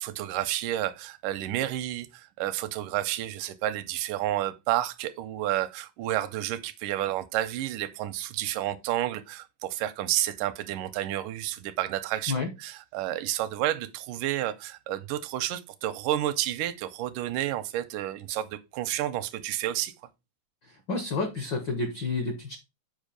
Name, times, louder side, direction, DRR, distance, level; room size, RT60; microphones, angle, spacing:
voice 1, 0.0-19.9, right 13 dB, 85° right, 2.2 m, -30 dB
voice 2, 20.6-22.6, left 3 dB, 70° left, 1.1 m, -30 dB
7.3 x 5.2 x 5.0 m
omnidirectional pair, 3.7 m